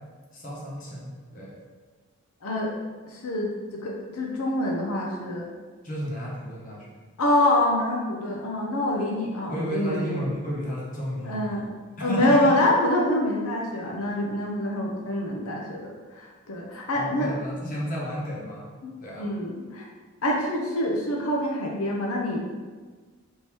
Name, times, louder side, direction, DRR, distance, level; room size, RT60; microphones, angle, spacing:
voice 1, 0.3-1.6 5.8-6.9 9.5-11.7 12.0-12.6 16.9-18.7 19.0-19.3, equal, 40° left, -5 dB, 1.0 m, -32 dB
voice 2, 3.1-3.5 3.8-5.5 7.2-10.2 11.2-11.7 12.0-17.3 18.8-19.8 20.2-22.4, left 1 dB, 85° left, -1 dB, 0.6 m, -26 dB
3.6 x 2.8 x 4.5 m, 1.4 s
head